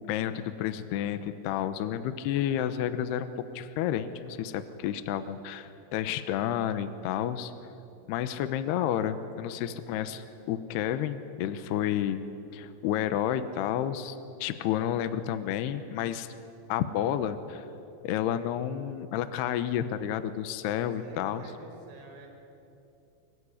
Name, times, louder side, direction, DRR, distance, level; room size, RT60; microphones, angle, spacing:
voice 1, 0.0-3.3 3.5-7.5 8.1-12.2 12.5-16.3 16.7-17.7 18.0-21.4, left 10 dB, 80° left, 11 dB, 2.4 m, -30 dB
voice 2, 9.9-10.3 21.0-22.3, right 3 dB, 75° right, 2 dB, 6.8 m, -48 dB
25.0 x 22.5 x 9.9 m, 2.7 s
omnidirectional pair, 5.9 m